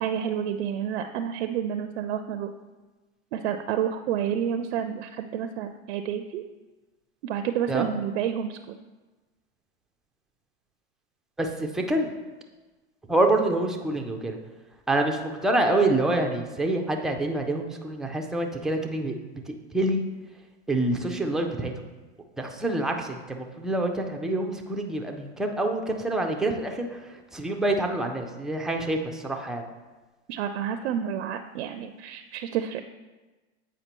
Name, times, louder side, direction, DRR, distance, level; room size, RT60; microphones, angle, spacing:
voice 1, 0.0-2.5 3.3-6.4 7.2-8.7 30.3-32.8, right 9 dB, 70° right, 8 dB, 0.5 m, -29 dB
voice 2, 11.4-12.1 13.1-14.4 14.9-19.2 19.5-20.0 20.7-21.7 22.4-29.6, right 2 dB, ahead, 2 dB, 0.3 m, -26 dB
8.1 x 5.0 x 2.9 m, 1.2 s
hypercardioid pair, 115°, 35 cm